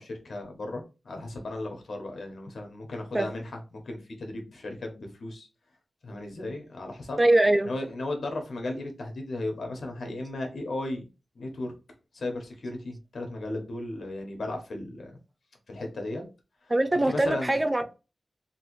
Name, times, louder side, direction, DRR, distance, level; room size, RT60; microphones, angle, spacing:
voice 1, 0.0-5.5 6.0-7.2 7.7-11.1 11.4-11.7 12.1-15.1 15.7-16.2 17.1-17.8, left 2 dB, 75° left, 1.0 m, -35 dB
voice 2, 7.2-7.7 16.7-17.8, right 1 dB, 20° right, 0.3 m, -22 dB
3.1 x 2.5 x 3.0 m
wide cardioid pair, 105°, 0 cm